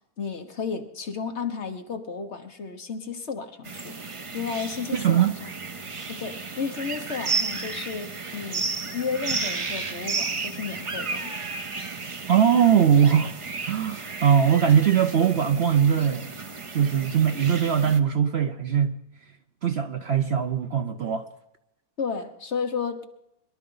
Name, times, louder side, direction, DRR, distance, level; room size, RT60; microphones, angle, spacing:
voice 1, 0.2-4.0 4.3-5.5 6.1-8.7 8.9-11.4 22.0-23.0, left 5 dB, 50° left, 1.4 m, -33 dB
sound 1, 3.6-18.0, right 4 dB, 30° right, 0.7 m, -33 dB
voice 2, 4.9-5.3 12.3-13.3 13.7-16.3 16.7-18.9 19.6-21.3, right 8 dB, 55° right, 0.8 m, -21 dB
22.5 x 12.0 x 3.9 m
omnidirectional pair, 1.6 m